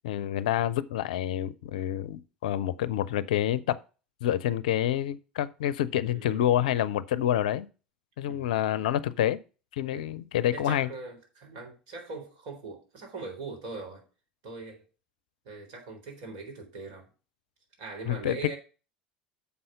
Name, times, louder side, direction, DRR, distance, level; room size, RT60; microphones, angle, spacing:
voice 1, 0.0-3.8 4.2-7.7 8.2-9.4 9.7-10.9 18.1-18.5, left 11 dB, 65° left, 0.5 m, -28 dB
voice 2, 6.0-6.5 8.2-8.5 9.9-10.0 10.5-14.0 14.4-14.8 15.5-17.1 17.8-18.6, right 3 dB, 60° right, 3.8 m, -41 dB
7.0 x 5.5 x 6.7 m
figure-of-eight pair, 70°, 4 cm